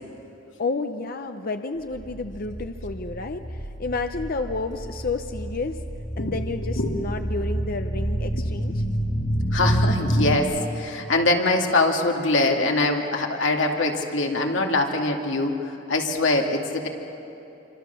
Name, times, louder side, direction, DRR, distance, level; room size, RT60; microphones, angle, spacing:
voice 1, 0.6-5.8 6.2-8.8, left 3 dB, 50° left, 7 dB, 0.7 m, -30 dB
sound 1, 1.9-10.4, equal, 30° left, 4.1 m, -28 dB
voice 2, 9.5-15.5 15.9-16.9, left 2 dB, 70° left, 1 dB, 2.3 m, -23 dB
26.5 x 25.5 x 7.0 m, 2.9 s
head